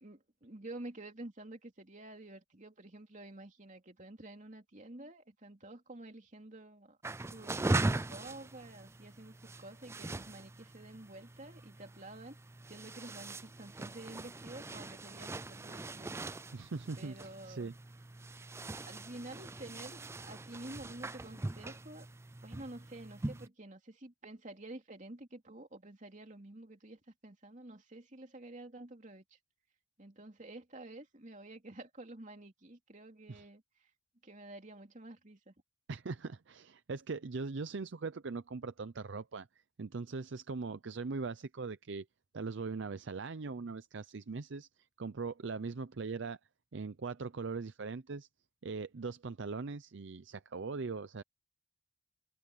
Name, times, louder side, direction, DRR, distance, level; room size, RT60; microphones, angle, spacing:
voice 1, 0.0-7.0 7.3-12.4 12.7-16.1 17.0-17.7 18.9-22.1 22.4-29.4 30.0-33.6 34.2-35.5, right 2 dB, 40° right, 2.9 m, -50 dB
sound 1, 7.0-23.5, right 2 dB, 15° right, 0.3 m, -40 dB
voice 2, 16.5-17.2 17.4-17.7 33.3-33.4 35.9-39.5 39.8-42.1 42.3-44.7 45.0-46.4 46.7-48.3 48.6-51.2, right 4 dB, 60° right, 0.6 m, -40 dB
head